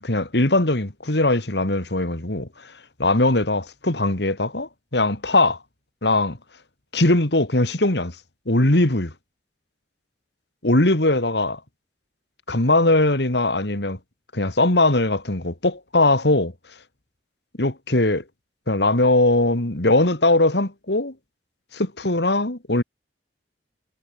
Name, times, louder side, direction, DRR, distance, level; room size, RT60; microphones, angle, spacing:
voice 1, 0.0-2.7 3.0-5.6 6.0-6.4 6.9-8.2 8.5-9.1 10.6-11.6 12.5-14.0 14.3-16.5 17.6-18.2 18.7-21.1 21.7-22.8, left 2 dB, 70° left, 2.6 m, -20 dB
head